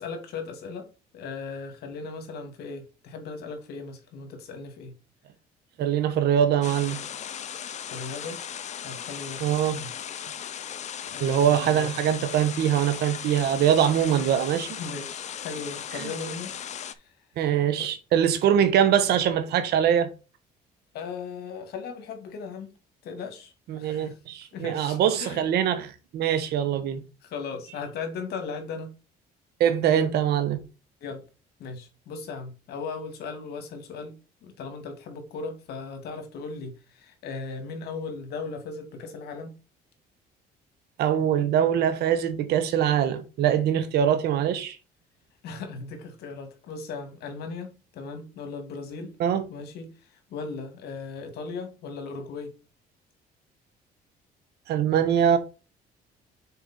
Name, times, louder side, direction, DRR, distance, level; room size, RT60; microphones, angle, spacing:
voice 1, 0.0-5.0 7.9-8.4 8.8-9.4 9.8-10.1 11.1-11.9 14.2-14.3 14.8-17.0 17.8-17.9 20.9-22.7 23.0-24.1 24.5-25.4 27.2-28.9 29.9-30.1 31.0-31.2 31.6-34.2 34.4-39.5 45.4-49.2 49.5-49.9 50.3-52.5, left 4 dB, 75° left, 2.0 m, -37 dB
voice 2, 5.8-7.0 9.4-9.8 11.2-14.8 15.9-16.1 17.4-20.1 23.7-27.0 29.6-30.6 41.0-44.8 49.2-49.4 54.7-55.4, right 9 dB, 75° right, 1.2 m, -23 dB
sound 1, 6.6-16.9, left 9 dB, 45° left, 0.6 m, -37 dB
6.8 x 4.5 x 4.3 m
cardioid pair, 110°, 17 cm